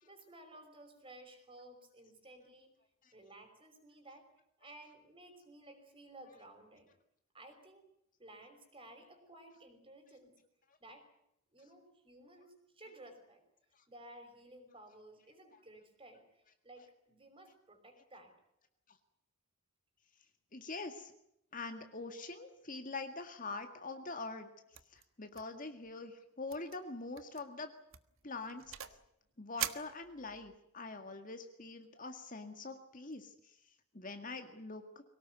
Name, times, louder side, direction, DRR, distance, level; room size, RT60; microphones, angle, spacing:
voice 1, 0.0-2.7 3.1-4.3 4.6-6.9 7.3-7.9 8.2-10.4 10.8-11.1 11.5-13.4 13.9-18.3, right 1 dB, 25° right, 6 dB, 5.6 m, -56 dB
voice 2, 20.5-21.1 21.5-24.5 24.9-27.7 28.2-28.9 29.4-33.6 33.9-35.0, left 3 dB, 35° left, 6 dB, 1.9 m, -44 dB
sound 1, 24.7-25.0 25.3-25.6 25.9-26.0 26.5-26.8 27.2-27.4 27.9-29.1 29.6-30.6, right 11 dB, 60° right, 1.5 m, -42 dB
23.5 x 18.5 x 9.5 m, 0.78 s
head